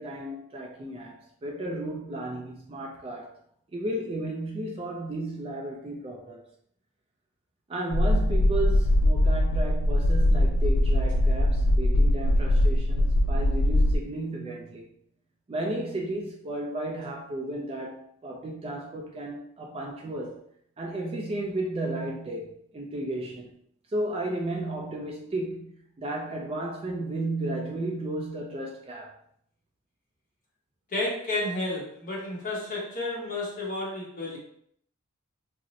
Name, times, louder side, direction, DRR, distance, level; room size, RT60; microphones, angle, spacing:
voice 1, 0.0-3.3 3.7-6.4 7.7-14.9 15.5-20.4 20.8-23.5 23.9-25.7 26.0-29.1, right 1 dB, 25° right, 0.3 m, -33 dB
sound 1, 7.9-14.0, left 1 dB, 75° left, 0.3 m, -22 dB
voice 2, 30.9-34.4, left 2 dB, 35° left, 0.9 m, -31 dB
2.6 x 2.0 x 3.9 m
head